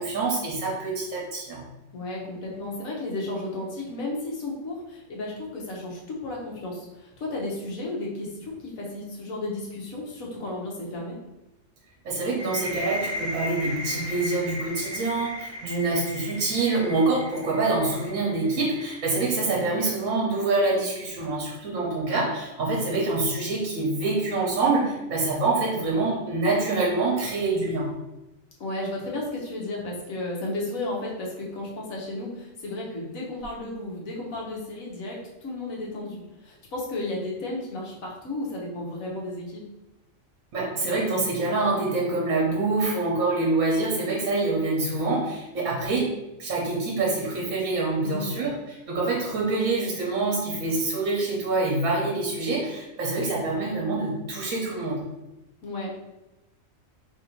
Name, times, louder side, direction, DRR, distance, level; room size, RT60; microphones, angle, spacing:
voice 1, 0.0-1.7 12.0-27.9 40.5-46.1 46.4-55.0, right 3 dB, 70° right, -3 dB, 1.2 m, -26 dB
voice 2, 1.9-11.2 28.6-39.7 48.0-48.3 55.6-55.9, left 2 dB, 75° left, -3 dB, 1.4 m, -33 dB
sound 1, 12.4-19.9, left 1 dB, 30° right, 0.7 m, -36 dB
3.3 x 2.6 x 4.4 m, 0.98 s
omnidirectional pair, 1.4 m